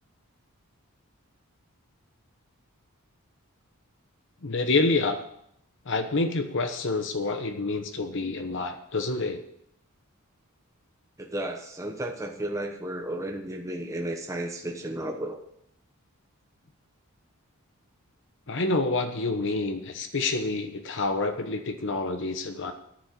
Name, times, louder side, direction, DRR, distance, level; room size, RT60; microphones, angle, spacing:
voice 1, 4.4-5.2 5.9-9.4 18.5-22.7, left 3 dB, 55° left, 7 dB, 1.0 m, -27 dB
voice 2, 11.2-15.4, right 1 dB, 15° right, 2 dB, 1.0 m, -33 dB
10.5 x 7.2 x 8.2 m, 0.73 s
head